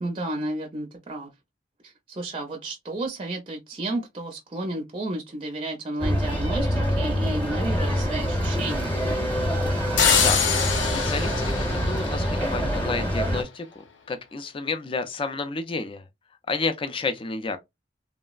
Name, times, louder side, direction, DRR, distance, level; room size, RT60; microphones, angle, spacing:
voice 1, 0.0-1.3 1.8-9.0, right 2 dB, 30° right, 0.5 m, -32 dB
sound 1, 6.0-13.4, equal, 10° left, 0.8 m, -25 dB
sound 2, 10.0-12.8, left 6 dB, 80° left, 0.6 m, -24 dB
voice 2, 10.9-13.7 14.1-16.0 16.5-17.6, left 3 dB, 30° left, 0.4 m, -30 dB
3.2 x 2.0 x 2.3 m
head